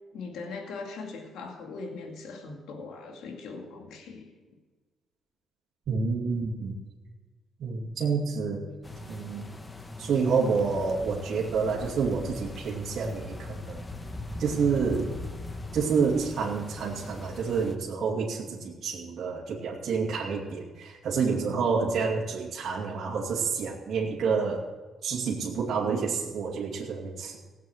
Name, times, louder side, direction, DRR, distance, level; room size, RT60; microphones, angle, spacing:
voice 1, 0.1-4.3, left 4 dB, 85° left, 2 dB, 2.3 m, -40 dB
voice 2, 5.9-6.8 7.6-8.7 9.1-9.4 10.0-13.8 14.4-15.1 15.7-24.6 25.0-27.4, right 5 dB, 60° right, -4 dB, 2.5 m, -28 dB
sound 1, 8.8-17.7, left 2 dB, 20° left, 1.3 m, -40 dB
17.0 x 8.2 x 7.9 m, 1.3 s
cardioid pair, 90°, 0 cm